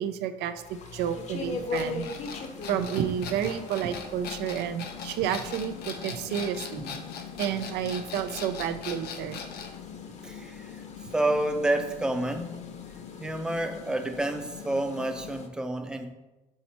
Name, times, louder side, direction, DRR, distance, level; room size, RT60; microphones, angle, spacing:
voice 1, 0.0-2.4 2.7-6.8 7.4-9.4, right 9 dB, 80° right, 10 dB, 0.4 m, -31 dB
sound 1, 0.6-15.5, left 3 dB, 40° left, 0.8 m, -42 dB
sound 2, 1.3-15.5, left 9 dB, 85° left, 0.4 m, -44 dB
sound 3, 1.7-9.8, left 5 dB, 70° left, 0.8 m, -40 dB
voice 2, 10.2-10.7 11.1-12.6 13.2-16.1, right 1 dB, 5° right, 6 dB, 0.5 m, -29 dB
5.7 x 4.2 x 4.2 m, 1.1 s
cardioid pair, 110°, 17 cm